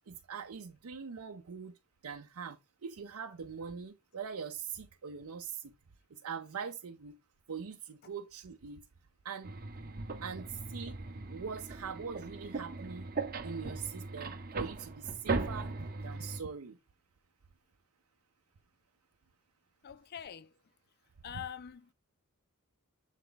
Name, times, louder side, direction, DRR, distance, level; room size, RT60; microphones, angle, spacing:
voice 1, 0.1-1.7 2.0-5.7 6.1-7.2 7.5-8.8 9.2-9.9 10.2-11.0 11.3-13.1 13.4-16.8, right 6 dB, 80° right, 0.6 m, -42 dB
sound 1, 9.4-16.4, right 3 dB, 40° right, 0.7 m, -39 dB
voice 2, 19.8-20.5 21.2-21.9, left 9 dB, 45° left, 0.4 m, -44 dB
7.2 x 3.4 x 3.9 m
head